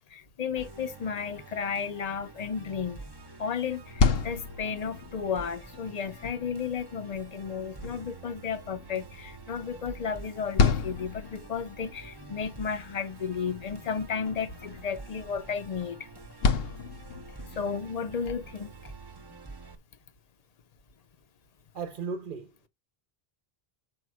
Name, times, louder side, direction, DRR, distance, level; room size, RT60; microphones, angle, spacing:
voice 1, 0.1-3.0 3.4-16.1 17.5-18.9, left 6 dB, 45° left, 0.8 m, -33 dB
Musical instrument, 0.6-19.8, right 3 dB, 25° right, 0.8 m, -48 dB
sound 1, 3.7-17.7, left 5 dB, 70° left, 0.9 m, -33 dB
voice 2, 21.7-22.7, right 5 dB, 60° right, 0.8 m, -36 dB
5.2 x 4.6 x 6.2 m
omnidirectional pair, 1.0 m